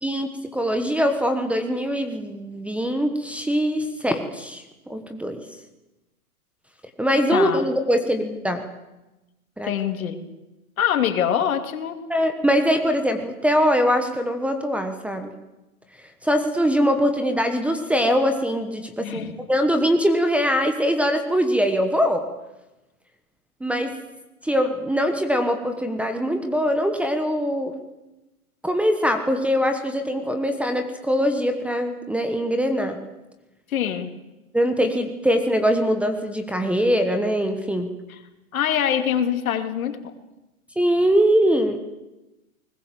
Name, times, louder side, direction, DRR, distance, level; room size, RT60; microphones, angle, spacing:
voice 1, 0.0-5.4 7.0-8.6 9.6-9.7 12.1-15.3 16.2-22.3 23.6-23.9 24.4-27.8 28.6-33.0 34.5-37.9 40.8-41.8, equal, 5° right, 7 dB, 1.1 m, -22 dB
voice 2, 7.3-7.6 9.6-10.2 10.8-12.0 19.0-19.3 33.7-34.1 38.1-38.2 38.5-40.1, left 9 dB, 70° left, 7 dB, 2.8 m, -24 dB
22.0 x 20.0 x 7.6 m, 1.0 s
hypercardioid pair, 140°, 44 cm